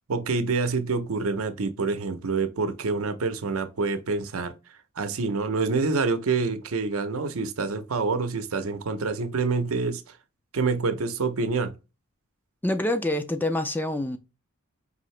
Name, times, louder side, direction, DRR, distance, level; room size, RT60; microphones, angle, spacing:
voice 1, 0.1-4.5 5.0-10.0 10.5-11.7, right 4 dB, 90° right, 0.7 m, -27 dB
voice 2, 12.6-14.2, left 1 dB, 10° left, 0.3 m, -26 dB
5.0 x 2.7 x 3.2 m
head